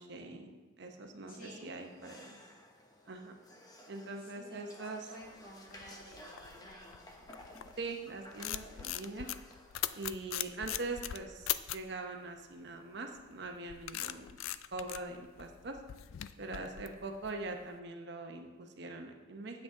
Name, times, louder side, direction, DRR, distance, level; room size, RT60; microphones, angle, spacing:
voice 1, 0.0-2.4 3.1-3.4 3.9-5.0 7.8-9.3 9.9-14.4 14.7-15.8 16.4-19.6, right 3 dB, 55° right, 4 dB, 0.8 m, -42 dB
voice 2, 1.3-1.7 4.2-7.3, equal, 45° left, -3 dB, 2.1 m, -53 dB
sound 1, 1.8-10.1, left 1 dB, 20° left, 0.8 m, -55 dB
sound 2, 5.5-7.9 8.2-11.9 13.2-17.7, left 13 dB, 80° left, 0.3 m, -40 dB
8.9 x 7.4 x 3.7 m, 1.2 s
head